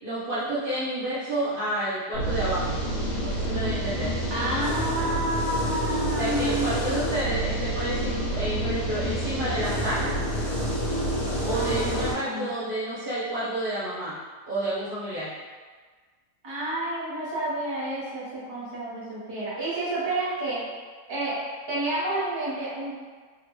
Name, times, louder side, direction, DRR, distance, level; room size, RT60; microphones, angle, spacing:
voice 1, 0.0-2.8 3.2-4.2 6.2-10.1 11.4-14.1 14.5-15.3, right 1 dB, 85° right, -10 dB, 0.4 m, -30 dB
sound 1, 2.1-12.1, right 1 dB, 65° left, 1.3 m, -28 dB
voice 2, 4.3-6.7 11.5-12.5 16.4-20.6 21.1-21.3 21.7-23.1, right 1 dB, 30° right, -8 dB, 0.5 m, -30 dB
3.7 x 2.2 x 2.9 m, 1.5 s
omnidirectional pair, 1.8 m